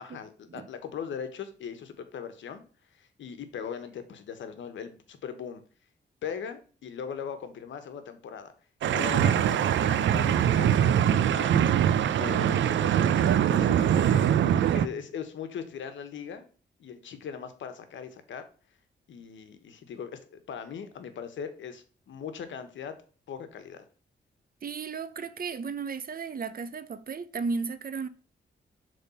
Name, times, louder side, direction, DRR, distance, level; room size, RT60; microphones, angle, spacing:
voice 1, 0.0-2.6 2.9-5.6 6.2-8.5 8.9-11.7 12.1-14.3 14.7-16.5 16.8-18.4 19.1-22.9 23.3-23.8, left 7 dB, 90° left, 1.1 m, -39 dB
sound 1, 8.8-14.8, right 10 dB, 90° right, 0.5 m, -23 dB
voice 2, 24.6-28.1, right 5 dB, 50° right, 0.8 m, -34 dB
7.0 x 3.7 x 5.5 m
cardioid pair, 75°, 19 cm